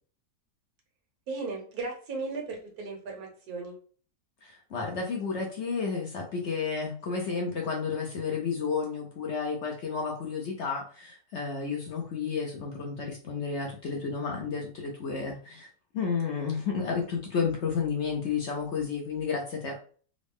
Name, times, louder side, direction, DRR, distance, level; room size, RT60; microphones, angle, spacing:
voice 1, 1.3-3.7, right 3 dB, 75° right, 1 dB, 1.5 m, -36 dB
voice 2, 4.4-15.7 15.9-19.8, left 5 dB, 60° left, 1 dB, 0.8 m, -31 dB
3.8 x 2.0 x 3.5 m, 0.43 s
omnidirectional pair, 1.6 m